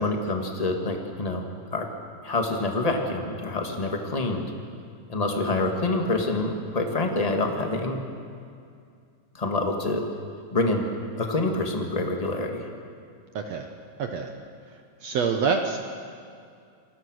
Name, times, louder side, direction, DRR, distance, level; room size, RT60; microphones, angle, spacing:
voice 1, 0.0-1.4 1.7-1.9 2.2-4.5 5.1-8.0 9.3-10.0 10.5-10.8 11.2-12.6, left 2 dB, 20° left, 3 dB, 1.0 m, -26 dB
voice 2, 13.4-13.7 14.0-14.3 15.0-15.8, right 5 dB, 65° right, 5 dB, 1.9 m, -26 dB
28.0 x 20.5 x 6.4 m, 2.3 s
omnidirectional pair, 3.9 m